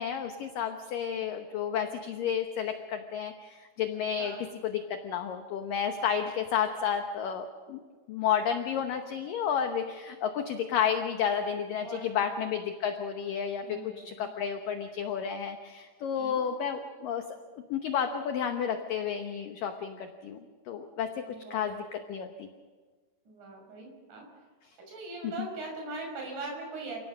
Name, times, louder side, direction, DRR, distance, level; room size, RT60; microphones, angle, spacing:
voice 1, 0.0-7.8 8.1-17.2 17.7-21.3 21.5-22.5 25.2-25.3, left 8 dB, 70° left, 6 dB, 2.2 m, -31 dB
voice 2, 13.6-14.3 16.1-16.4 21.2-21.7 23.3-24.2 24.9-27.0, right 3 dB, 45° right, 0 dB, 7.5 m, -41 dB
29.0 x 17.5 x 6.3 m, 1.4 s
omnidirectional pair, 5.2 m